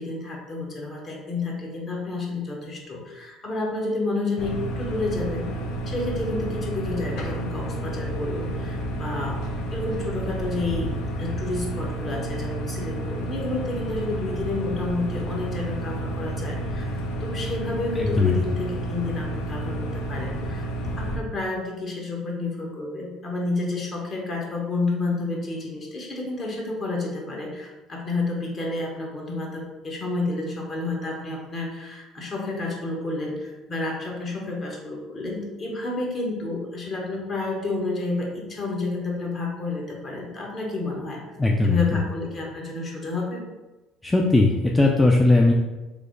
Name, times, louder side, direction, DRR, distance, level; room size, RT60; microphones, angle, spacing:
voice 1, 0.0-5.6 5.9-16.9 17.2-20.7 21.0-41.2 41.6-43.4, left 2 dB, 40° left, -1 dB, 1.0 m, -30 dB
sound 1, 4.4-21.2, right 1 dB, 70° left, 0.5 m, -30 dB
voice 2, 18.0-18.3 41.4-42.0 44.0-45.5, left 2 dB, 15° left, 0 dB, 0.4 m, -19 dB
3.2 x 2.1 x 3.7 m, 1.1 s
hypercardioid pair, 75°, 0 cm